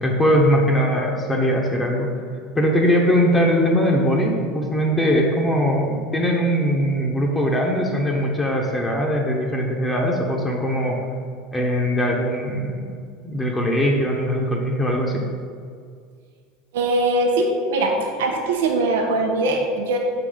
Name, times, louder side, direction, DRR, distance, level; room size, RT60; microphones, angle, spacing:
voice 1, 0.0-2.1 2.5-11.0 11.5-12.9 13.2-15.2, equal, 20° left, -1 dB, 1.0 m, -21 dB
voice 2, 16.7-17.9 18.2-20.0, right 2 dB, 75° right, 1 dB, 0.8 m, -21 dB
5.7 x 3.9 x 4.9 m, 2.1 s
hypercardioid pair, 80°, 0 cm